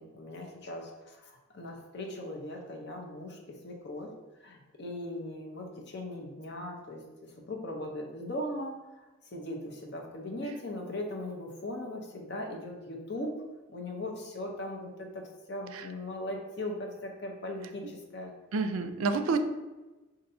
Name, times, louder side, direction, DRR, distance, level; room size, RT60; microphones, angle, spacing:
voice 1, 0.0-4.1 4.4-13.3 13.7-18.3, left 1 dB, 55° left, 1 dB, 0.7 m, -39 dB
voice 2, 18.5-19.4, right 4 dB, 85° right, 8 dB, 0.4 m, -28 dB
5.4 x 2.6 x 2.6 m, 1.1 s
head